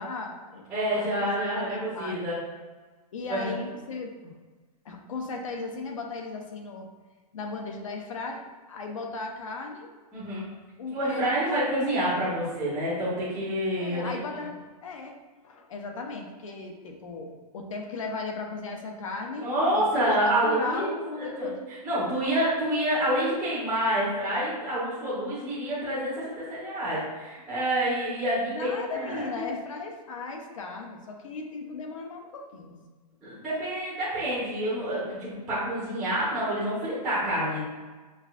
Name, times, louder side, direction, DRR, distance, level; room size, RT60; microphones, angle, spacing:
voice 1, 0.0-1.4 1.7-2.2 3.1-4.1 4.8-6.9 7.3-8.4 8.7-9.9 10.8-11.2 13.8-14.6 14.8-15.2 15.4-21.6 28.5-32.8, left 3 dB, 50° left, 2 dB, 0.7 m, -36 dB
voice 2, 0.7-2.4 3.3-3.5 10.1-10.5 10.9-14.1 19.4-29.4 33.2-37.6, right 1 dB, 5° right, -9 dB, 0.6 m, -28 dB
6.3 x 2.6 x 2.4 m, 1.3 s
hypercardioid pair, 180°, 21 cm